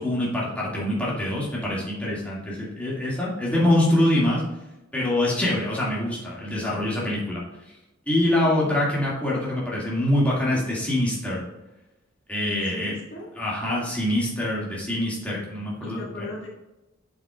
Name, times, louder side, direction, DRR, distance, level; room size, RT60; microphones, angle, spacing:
voice 1, 0.0-4.4 4.9-7.4 8.1-11.4 12.3-12.9 13.4-16.3, left 1 dB, 5° left, -6 dB, 2.1 m, -24 dB
voice 2, 8.4-9.2 12.5-13.3 15.8-16.5, left 2 dB, 65° left, -2 dB, 1.6 m, -39 dB
7.7 x 7.4 x 2.4 m, 1.0 s
head